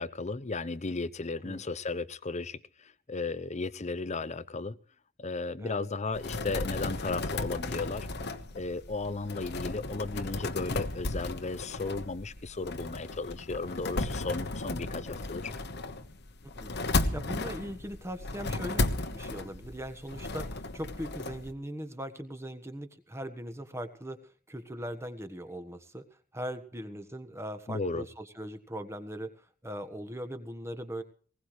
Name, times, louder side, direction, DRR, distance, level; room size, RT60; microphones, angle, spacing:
voice 1, 0.0-4.7 5.2-8.1 8.5-15.5 27.7-28.1, left 3 dB, 35° left, 15 dB, 0.7 m, -35 dB
voice 2, 5.6-5.9 16.6-16.7 17.1-24.2 24.5-26.0 26.3-31.0, equal, 10° right, 9 dB, 1.4 m, -40 dB
sound 1, 6.1-21.5, left 2 dB, 50° left, 1.2 m, -34 dB
20.0 x 18.0 x 3.2 m, 0.42 s
head